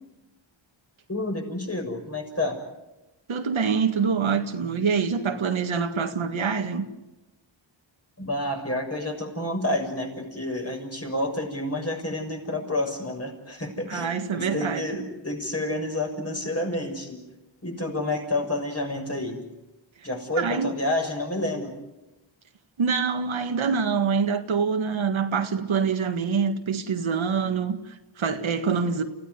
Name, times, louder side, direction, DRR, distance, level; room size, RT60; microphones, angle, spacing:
voice 1, 1.1-2.6 8.2-17.2 17.6-19.4 20.0-21.8, left 1 dB, 30° left, 6.7 m, -29 dB
voice 2, 3.3-6.9 13.9-14.8 20.4-20.7 22.8-29.0, right 5 dB, 85° right, 1.9 m, -25 dB
28.5 x 16.0 x 9.6 m
wide cardioid pair, 75°, 47 cm